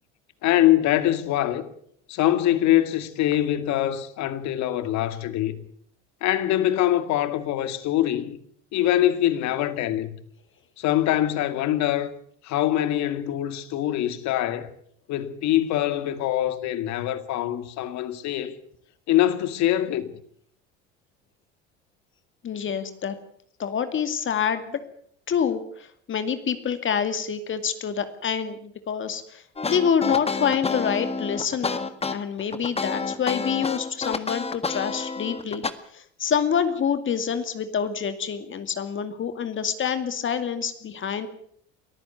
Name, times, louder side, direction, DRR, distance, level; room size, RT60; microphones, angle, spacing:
voice 1, 0.4-1.7 2.1-5.6 6.2-8.4 8.7-10.1 10.8-12.1 12.4-14.7 15.1-18.6 19.1-20.2, left 13 dB, 60° left, 2.3 m, -23 dB
voice 2, 22.4-23.2 23.6-24.8 25.3-29.4 29.7-31.8 32.1-35.6 35.9-41.3, left 7 dB, 40° left, 2.4 m, -27 dB
sound 1, 29.6-35.7, left 4 dB, 20° left, 1.8 m, -29 dB
23.5 x 14.5 x 8.3 m
hypercardioid pair, 85°, 31 cm